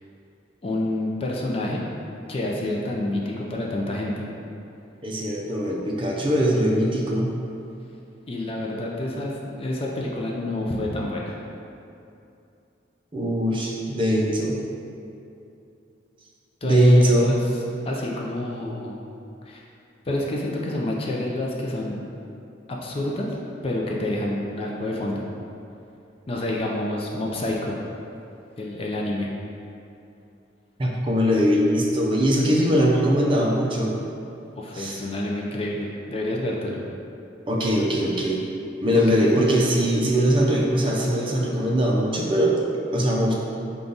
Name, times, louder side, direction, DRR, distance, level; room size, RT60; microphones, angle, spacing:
voice 1, 0.6-1.8 2.3-4.3 8.3-11.4 16.6-19.0 19.4-19.6 20.1-22.0 22.7-23.3 23.6-25.2 26.3-27.8 28.6-29.3 34.6-36.8 38.9-39.7, left 1 dB, 30° left, -2 dB, 0.4 m, -28 dB
voice 2, 5.0-7.3 13.1-14.6 16.6-17.4 30.8-34.0 34.7-35.0 37.5-38.4 38.8-42.6 42.9-43.3, equal, 25° right, -3 dB, 0.5 m, -21 dB
5.1 x 2.3 x 3.9 m, 2.7 s
head